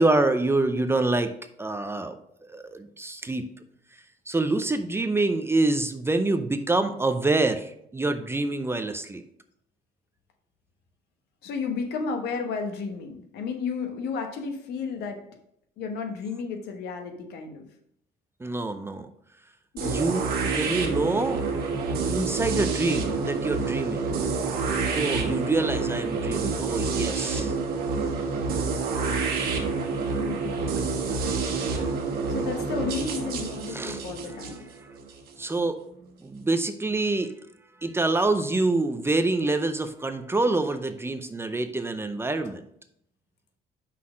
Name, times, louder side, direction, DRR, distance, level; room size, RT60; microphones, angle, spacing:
voice 1, 0.0-1.3 1.6-2.2 2.5-3.4 4.3-9.2 18.4-19.1 19.8-21.4 22.1-24.1 24.9-27.5 33.7-34.0 35.4-35.8 36.2-37.3 37.8-42.6, right 2 dB, 15° right, 9 dB, 0.6 m, -26 dB
voice 2, 11.4-15.2 15.8-17.7 19.7-20.0 30.1-30.7 31.1-31.7 32.3-34.6, left 5 dB, 75° left, 5 dB, 1.2 m, -33 dB
sound 1, 19.8-35.6, right 4 dB, 65° right, 1.5 m, -28 dB
5.7 x 4.1 x 6.2 m, 0.72 s
cardioid pair, 110°, 17 cm